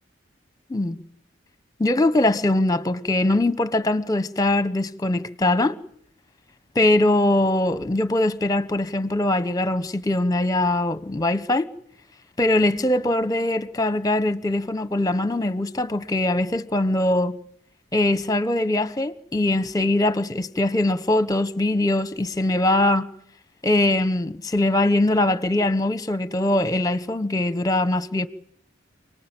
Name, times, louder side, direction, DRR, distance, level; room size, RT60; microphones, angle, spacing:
voice 1, 0.7-1.0 1.8-5.8 6.7-11.7 12.4-17.4 17.9-23.1 23.6-28.3, left 1 dB, 20° left, 1.1 m, -22 dB
29.0 x 19.0 x 9.0 m
head